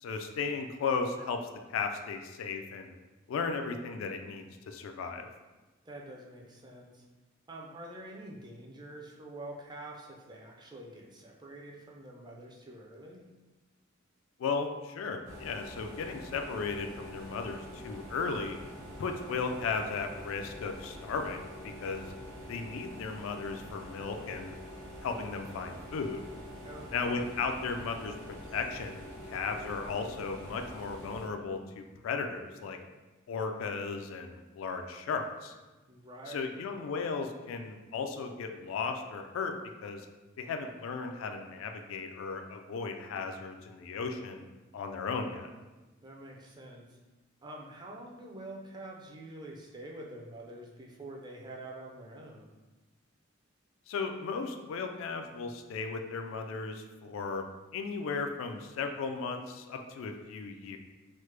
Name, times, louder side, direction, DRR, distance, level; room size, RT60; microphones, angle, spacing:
voice 1, 0.0-2.9 3.3-5.3 14.4-18.6 19.0-22.1 22.5-24.6 25.0-26.2 26.9-28.1 28.5-32.8 33.3-35.5 36.3-39.5 39.8-40.0 40.4-44.4 44.7-45.5 53.9-57.4 57.7-60.8, left 4 dB, 75° left, 6 dB, 0.3 m, -35 dB
voice 2, 5.8-7.0 7.5-13.3 26.6-27.3 35.9-36.6 46.0-47.0 47.4-52.5, right 1 dB, 20° right, -1 dB, 0.4 m, -46 dB
sound 1, 15.2-31.3, equal, 70° right, 0.8 m, -46 dB
3.1 x 2.0 x 3.2 m, 1.2 s
head